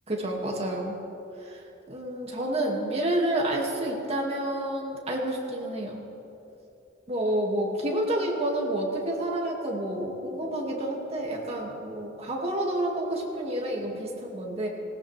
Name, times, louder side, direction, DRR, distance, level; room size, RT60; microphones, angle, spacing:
voice 1, 0.1-1.0 1.4-1.6 1.9-6.0 7.1-14.7, right 1 dB, 30° right, -2 dB, 2.3 m, -29 dB
19.5 x 18.5 x 3.5 m, 2.8 s
head